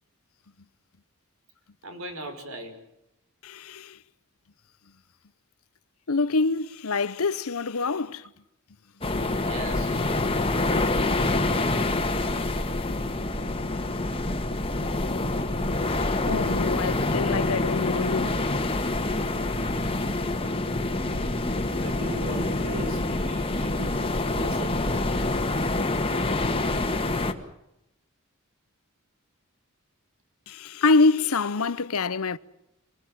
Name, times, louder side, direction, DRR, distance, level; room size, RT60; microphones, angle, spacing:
voice 1, 1.8-2.8 9.5-10.0 21.6-25.3, right 1 dB, 70° right, 5.6 m, -39 dB
voice 2, 3.4-4.0 6.1-8.3 16.0-18.8 30.5-32.4, left 3 dB, 80° left, 0.9 m, -26 dB
sound 1, 9.0-27.3, left 2 dB, 25° left, 1.8 m, -26 dB
27.0 x 20.0 x 7.6 m
head